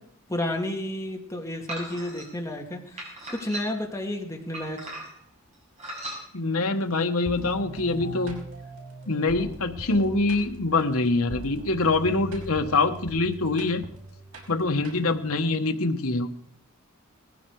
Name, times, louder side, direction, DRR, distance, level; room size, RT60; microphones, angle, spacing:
voice 1, 0.3-4.9, left 1 dB, 15° left, 1 dB, 2.3 m, -31 dB
sound 1, 1.7-2.3 3.0-3.9 4.5-5.3 5.8-6.2, right 1 dB, 30° right, 6.5 m, -37 dB
voice 2, 6.3-8.4 9.1-13.8 14.5-16.3, left 3 dB, 70° left, 5 dB, 1.4 m, -24 dB
sound 2, 7.3-15.4, right 1 dB, 80° right, 5.6 m, -41 dB
19.5 x 15.0 x 4.8 m, 0.64 s
head